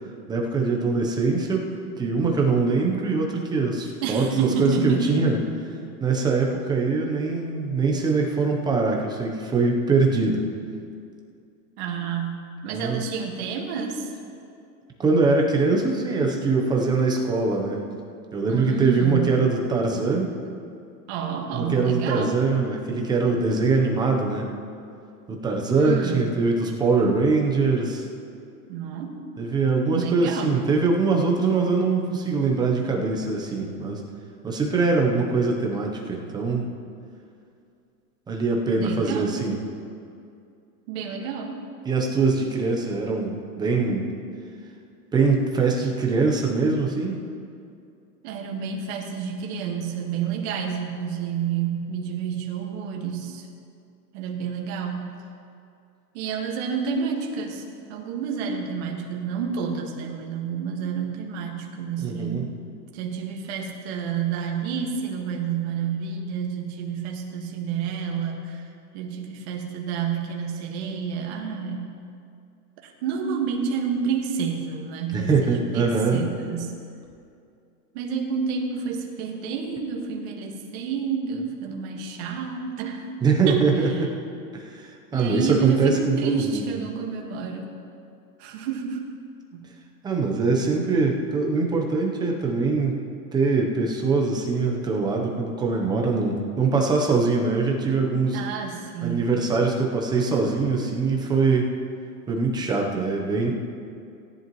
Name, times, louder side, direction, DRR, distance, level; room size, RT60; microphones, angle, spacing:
voice 1, 0.3-1.7 2.0-5.4 6.0-10.4 12.7-13.0 15.0-17.8 18.3-20.3 21.5-24.5 25.3-28.1 29.4-34.0 34.4-36.6 38.3-39.6 41.8-44.1 45.1-47.2 62.0-62.5 75.1-76.2 83.2-84.1 84.5-86.7 90.0-93.0 93.3-98.4 99.0-101.7 102.3-103.5, right 4 dB, 10° right, 1 dB, 0.7 m, -23 dB
voice 2, 4.0-5.2 5.8-5.9 11.8-12.4 12.6-14.1 18.5-19.4 21.1-22.4 25.8-26.3 28.7-29.2 29.9-30.5 38.7-39.4 40.9-41.6 48.2-53.5 54.1-55.2 56.1-57.6 57.9-62.6 62.9-68.7 68.9-71.9 72.8-76.8 77.9-83.1 83.5-83.7 83.9-84.1 85.1-87.7 88.4-89.1 89.5-89.7 98.3-99.4, right 6 dB, 45° right, 1 dB, 1.7 m, -29 dB
17.5 x 10.5 x 3.1 m, 2.4 s
hypercardioid pair, 145°, 47 cm